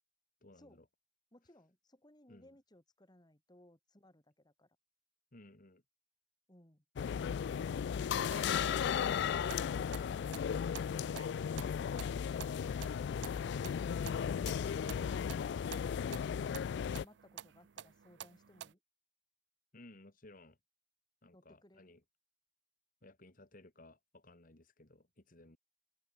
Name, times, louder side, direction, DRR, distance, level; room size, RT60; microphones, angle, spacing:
voice 1, 0.4-0.9 2.3-2.5 5.3-5.8 19.7-20.6 21.2-22.0 23.0-25.6, left 2 dB, 45° left, 2.2 m, -58 dB
voice 2, 1.3-4.8 6.5-6.8 16.1-18.8 21.3-21.9, left 1 dB, 20° left, 3.5 m, -64 dB
sound 1, 7.0-17.0, left 7 dB, 60° left, 0.3 m, -35 dB
sound 2, 8.3-14.3, right 4 dB, 30° right, 5.2 m, -58 dB
sound 3, 9.3-18.7, right 9 dB, 65° right, 0.5 m, -52 dB
open air
head